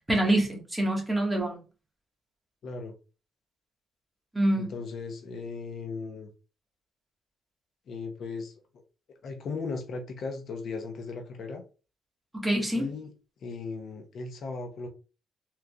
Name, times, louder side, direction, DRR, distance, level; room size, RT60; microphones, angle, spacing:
voice 1, 0.1-1.6 4.3-4.7 12.3-12.9, right 1 dB, 5° right, 1.5 m, -26 dB
voice 2, 2.6-2.9 4.6-6.3 7.9-8.5 9.2-11.6 12.7-13.1 13.4-14.9, left 4 dB, 65° left, 0.6 m, -37 dB
3.7 x 3.0 x 2.3 m
cardioid pair, 90°, 0 cm